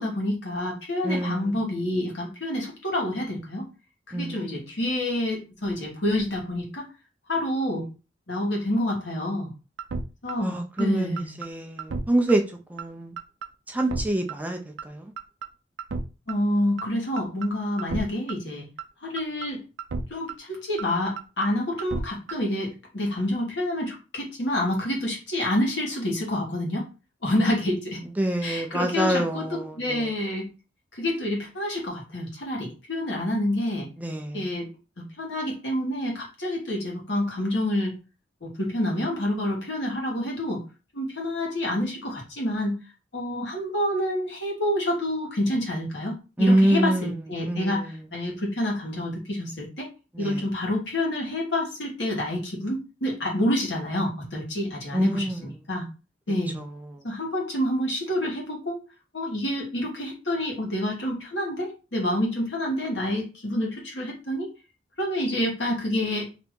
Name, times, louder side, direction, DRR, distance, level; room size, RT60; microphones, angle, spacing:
voice 1, 0.0-3.7 4.1-6.9 7.3-7.9 8.3-9.5 10.2-11.4 16.3-18.7 19.0-19.6 20.1-26.9 27.2-28.0 28.4-30.5 30.9-33.9 34.3-34.7 35.0-38.0 38.4-40.6 40.9-42.8 43.1-49.9 50.2-55.8 56.3-56.6 57.0-58.8 59.1-64.5 65.0-66.3, left 1 dB, 70° left, 1.4 m, -28 dB
voice 2, 1.0-1.4 4.1-4.5 10.4-12.4 12.7-13.1 13.7-14.6 14.8-15.0 28.2-30.0 34.0-34.4 46.4-47.1 47.5-47.9 50.2-50.4 54.9-55.4, right 1 dB, 10° right, 0.4 m, -25 dB
sound 1, 9.8-10.0 10.3-10.4 10.8-10.9 11.2-11.5 11.8-12.0 12.3-12.4 12.8-12.9 13.2-13.5 13.8-14.0 14.3-14.4 14.8-14.9 15.2-15.5 15.8-16.0 16.3-16.4 16.8-16.9 17.2-17.5 17.8-18.0 18.3-18.4 18.8-18.9 19.2-19.5 19.8-20.0 20.3-20.4 20.8-20.9 21.2-21.5 21.8-22.0 22.3-22.4, right 4 dB, 80° right, 0.5 m, -32 dB
2.9 x 2.6 x 3.5 m
head